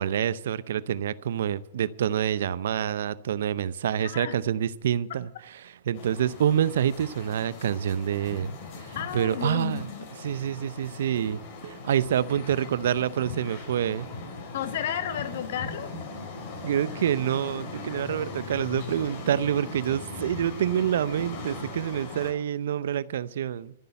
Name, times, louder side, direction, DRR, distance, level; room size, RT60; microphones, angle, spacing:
voice 1, 0.0-8.5 9.1-9.9 10.2-14.1 16.6-23.7, right 10 dB, 70° right, 0.6 m, -27 dB
voice 2, 4.0-4.4 8.9-10.1 14.5-15.9, left 9 dB, 65° left, 1.7 m, -32 dB
sound 1, 5.9-22.3, left 3 dB, 50° left, 4.8 m, -39 dB
14.0 x 6.8 x 9.6 m
hypercardioid pair, 130°, 0 cm